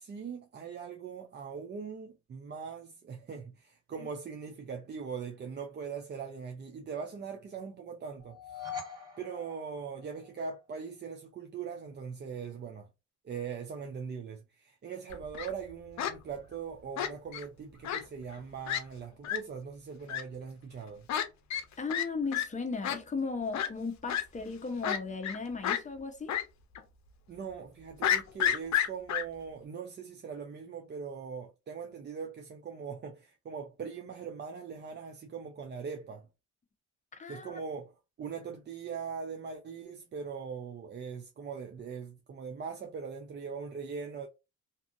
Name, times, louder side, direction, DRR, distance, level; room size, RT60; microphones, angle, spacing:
voice 1, 0.0-8.7 9.2-12.9 13.2-21.1 27.3-36.3 37.3-37.9 38.2-44.3, right 6 dB, 35° right, 0.5 m, -41 dB
sound 1, 8.2-10.5, left 7 dB, 10° right, 1.7 m, -43 dB
Fowl, 15.1-15.5 16.0-16.1 17.0-17.4 17.8-18.0 18.3-18.4 18.7-18.8 19.2-19.4 20.1-20.2 21.1-21.2 21.5-21.6 21.9-22.1 22.3-22.4 22.8-23.0 23.5-23.7 24.1-24.2 24.8-25.4 25.6-25.8 26.3-26.4 26.8-26.9 28.0-29.2, left 10 dB, 65° left, 0.6 m, -30 dB
voice 2, 21.8-26.3 37.1-37.6, left 4 dB, 25° left, 0.7 m, -36 dB
2.7 x 2.5 x 2.5 m
cardioid pair, 90°, 30 cm